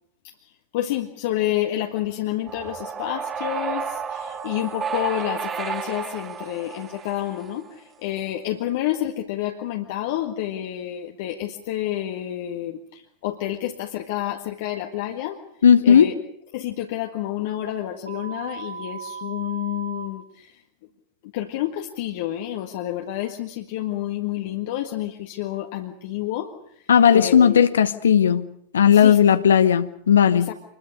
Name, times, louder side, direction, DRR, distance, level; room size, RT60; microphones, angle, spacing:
voice 1, 0.4-15.4 15.8-16.2 16.5-20.6 21.2-27.6 28.9-29.2 30.4-30.5, left 13 dB, 50° left, 1.7 m, -29 dB
sound 1, 2.5-7.7, right 6 dB, 25° right, 1.6 m, -32 dB
voice 2, 15.6-16.1 26.9-28.5 28.7-30.5, left 8 dB, 65° left, 1.0 m, -15 dB
sound 2, 18.1-20.1, right 5 dB, 90° left, 2.8 m, -36 dB
25.5 x 21.5 x 6.5 m
figure-of-eight pair, 90°, 0 cm